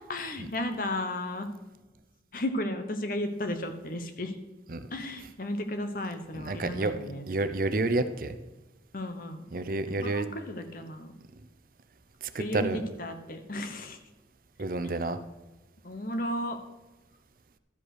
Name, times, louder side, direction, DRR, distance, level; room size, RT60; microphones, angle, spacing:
voice 1, 0.1-1.5 2.3-4.3 4.9-7.2 8.9-9.5 10.0-11.1 12.4-14.0 15.8-16.6, left 1 dB, 50° left, 7 dB, 1.0 m, -34 dB
voice 2, 6.4-7.0 7.3-8.4 9.5-10.3 12.3-12.8 14.6-15.2, right 2 dB, 50° right, 11 dB, 0.6 m, -29 dB
12.5 x 5.3 x 6.5 m, 1.1 s
head